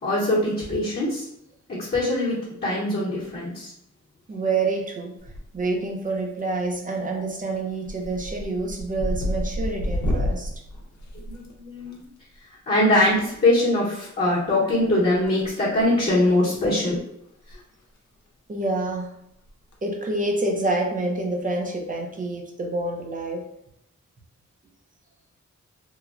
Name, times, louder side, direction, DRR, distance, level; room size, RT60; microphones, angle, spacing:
voice 1, 0.0-1.3 1.7-3.7 11.3-12.0 12.7-17.0 17.5-17.6, left 1 dB, 35° left, -9 dB, 0.9 m, -22 dB
voice 2, 4.3-10.5 18.5-19.2 19.8-23.4, right 2 dB, 30° right, 1 dB, 0.5 m, -27 dB
sound 1, 5.2-5.8 6.1-6.6 6.9-7.2 7.6-12.0 13.3-13.5 14.7-15.5 15.8-16.0 16.5-16.6 16.9-17.0 17.3-17.5 17.8-17.9 19.5-19.7, left 1 dB, 75° left, 0.6 m, -30 dB
3.0 x 2.1 x 2.4 m, 0.76 s
wide cardioid pair, 110°, 29 cm